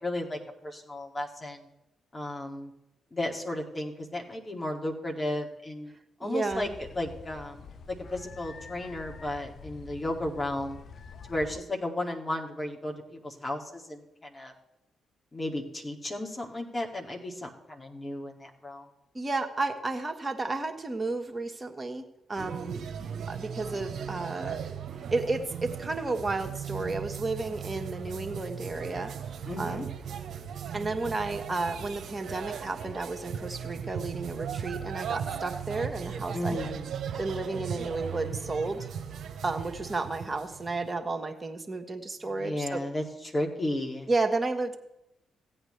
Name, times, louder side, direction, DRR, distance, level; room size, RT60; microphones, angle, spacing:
voice 1, 0.0-1.7 2.1-2.7 3.1-5.9 6.2-10.8 11.3-14.5 15.3-18.9 29.5-29.8 36.3-36.9 42.2-44.1, left 1 dB, 30° left, 1 dB, 2.5 m, -34 dB
voice 2, 6.2-6.7 19.1-22.8 23.3-24.6 25.1-29.1 29.6-29.9 30.7-36.7 37.2-38.9 39.4-42.8 44.1-44.8, right 3 dB, 25° right, 4 dB, 1.6 m, -32 dB
sound 1, 6.5-11.6, left 5 dB, 60° left, 0.8 m, -46 dB
sound 2, 22.4-40.9, right 7 dB, 65° right, 1.0 m, -38 dB
16.0 x 8.8 x 3.4 m, 0.85 s
supercardioid pair, 50°, 0 cm